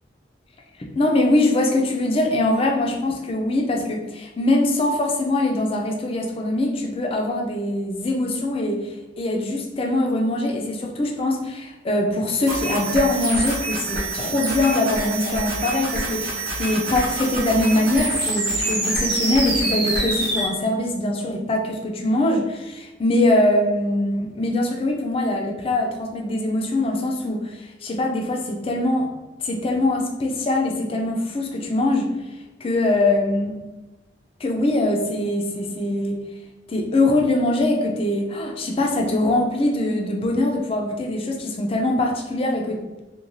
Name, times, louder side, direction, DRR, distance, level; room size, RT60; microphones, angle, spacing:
voice 1, 1.0-29.1 29.4-32.1 32.6-33.6 34.4-36.2 36.7-42.8, left 1 dB, 30° left, 1 dB, 0.4 m, -22 dB
sound 1, 12.5-20.5, right 2 dB, 55° right, 0.9 m, -26 dB
3.0 x 2.2 x 2.5 m, 1.1 s
head